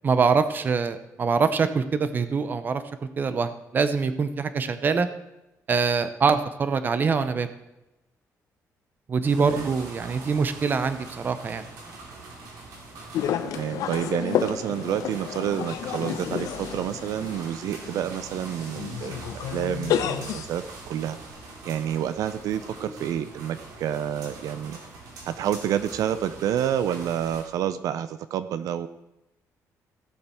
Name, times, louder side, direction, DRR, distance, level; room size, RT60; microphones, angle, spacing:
voice 1, 0.0-2.8 3.2-5.1 5.7-7.5 9.1-11.6, right 5 dB, 35° right, 11 dB, 0.7 m, -24 dB
sound 1, 9.2-27.4, right 3 dB, 90° right, 3.0 m, -43 dB
voice 2, 9.4-9.7 13.4-19.2 19.5-21.2 21.6-24.8 25.3-28.9, right 10 dB, 75° right, 13 dB, 0.5 m, -29 dB
sound 2, 13.1-20.5, left 9 dB, 85° left, 0.8 m, -31 dB
16.0 x 6.7 x 4.4 m, 0.93 s
cardioid pair, 145°, 6 cm